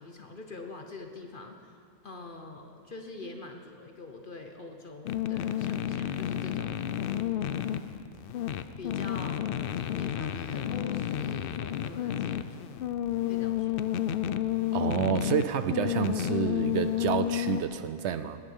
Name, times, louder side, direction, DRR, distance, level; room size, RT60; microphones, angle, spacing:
voice 1, 0.0-6.8 7.1-7.8 8.8-12.7 13.3-13.8, left 3 dB, 45° left, 5 dB, 0.9 m, -45 dB
sound 1, 5.1-17.6, left 11 dB, 75° left, 0.5 m, -31 dB
voice 2, 14.7-18.4, right 8 dB, 65° right, 12 dB, 0.7 m, -29 dB
19.0 x 10.0 x 5.5 m, 2.4 s
omnidirectional pair, 1.5 m